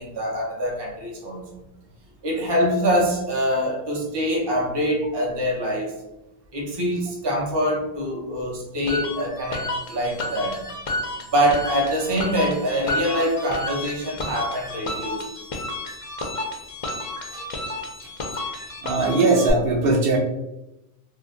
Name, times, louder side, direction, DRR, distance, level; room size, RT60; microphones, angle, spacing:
voice 1, 0.0-1.4 2.2-5.9 6.5-10.6 11.3-15.2, equal, 30° right, -2 dB, 0.5 m, -24 dB
sound 1, 8.9-19.5, left 2 dB, 50° left, 0.4 m, -31 dB
voice 2, 18.8-20.2, right 3 dB, 70° right, -1 dB, 0.7 m, -20 dB
2.5 x 2.1 x 3.5 m, 0.93 s
omnidirectional pair, 1.1 m